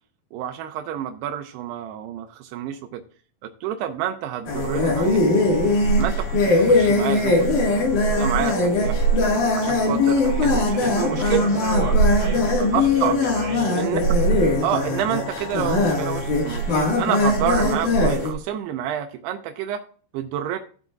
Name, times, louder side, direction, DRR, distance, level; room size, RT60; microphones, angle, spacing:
voice 1, 0.3-3.0 3.4-5.2 5.9-7.6 8.1-9.0 9.5-11.6 12.7-13.2 13.8-14.0 14.6-19.8 20.1-20.6, right 10 dB, 85° right, 6 dB, 2.6 m, -28 dB
sound 1, 4.5-18.3, left 1 dB, 55° left, 3.0 m, -20 dB
voice 2, 10.4-13.8, right 5 dB, 30° right, -3 dB, 3.6 m, -33 dB
15.0 x 7.6 x 2.4 m, 0.43 s
omnidirectional pair, 4.8 m